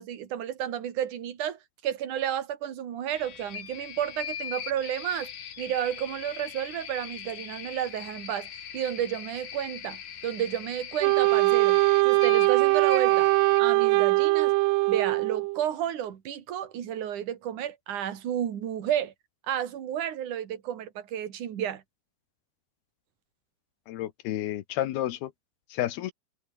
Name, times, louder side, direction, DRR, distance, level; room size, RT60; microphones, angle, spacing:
voice 1, 0.0-5.3 5.6-13.3 13.6-14.6 14.9-19.1 19.5-21.8, right 10 dB, 50° right, 3.4 m, -31 dB
sound 1, 3.1-13.6, left 9 dB, 55° left, 3.7 m, -41 dB
Wind instrument woodwind instrument, 11.0-15.6, right 23 dB, 85° right, 2.6 m, -22 dB
voice 2, 23.9-25.3 25.7-26.1, left 13 dB, 75° left, 3.0 m, -31 dB
omnidirectional pair, 4.8 m